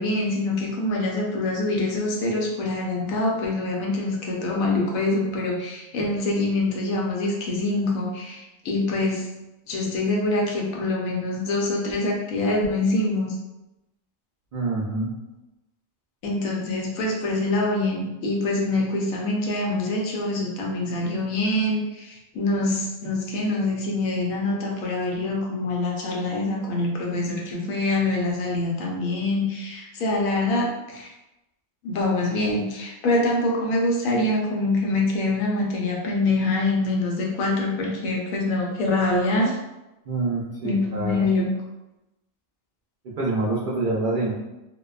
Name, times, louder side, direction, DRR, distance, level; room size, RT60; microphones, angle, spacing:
voice 1, 0.0-9.3 9.7-13.4 16.2-31.1 31.8-39.6 40.6-41.5, left 2 dB, 85° left, -1 dB, 1.0 m, -25 dB
voice 2, 14.5-15.1 40.1-41.3 43.0-44.4, right 2 dB, 75° right, -7 dB, 0.4 m, -26 dB
2.6 x 2.1 x 2.3 m, 0.97 s
omnidirectional pair, 1.4 m